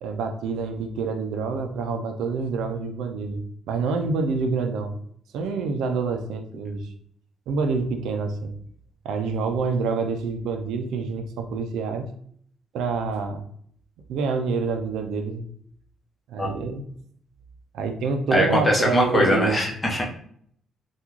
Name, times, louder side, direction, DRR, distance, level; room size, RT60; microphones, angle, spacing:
voice 1, 0.0-3.4 3.7-4.9 5.3-6.9 7.5-8.5 9.0-12.1 12.7-13.4 14.1-15.4 16.3-17.0 17.7-19.6, right 4 dB, 85° right, 6 dB, 0.4 m, -27 dB
voice 2, 18.3-20.0, left 1 dB, 20° left, -1 dB, 0.9 m, -21 dB
3.5 x 2.3 x 3.0 m, 0.63 s
cardioid pair, 90°, 0 cm